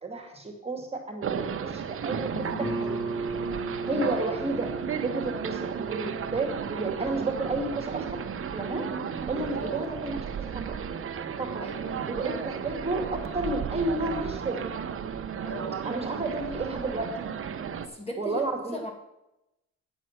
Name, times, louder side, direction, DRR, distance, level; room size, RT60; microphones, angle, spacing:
voice 1, 0.0-2.3 2.6-3.0 3.8-4.7 5.0-8.0 8.5-8.9 9.3-10.2 11.4-11.6 12.1-14.7 15.8-17.1 18.2-18.8, right 2 dB, 20° right, 2 dB, 2.1 m, -31 dB
sound 1, 1.2-17.9, right 7 dB, 45° right, 0.9 m, -34 dB
voice 2, 2.3-2.8 3.9-4.4 9.6-9.8 11.6-12.1 15.0-15.1 15.4-15.8 17.8-18.4 18.7-18.9, left 1 dB, 20° left, 2 dB, 2.2 m, -37 dB
Guitar, 2.6-8.0, right 3 dB, ahead, 2.4 m, -36 dB
9.3 x 7.5 x 5.8 m, 0.90 s
cardioid pair, 90°, 30 cm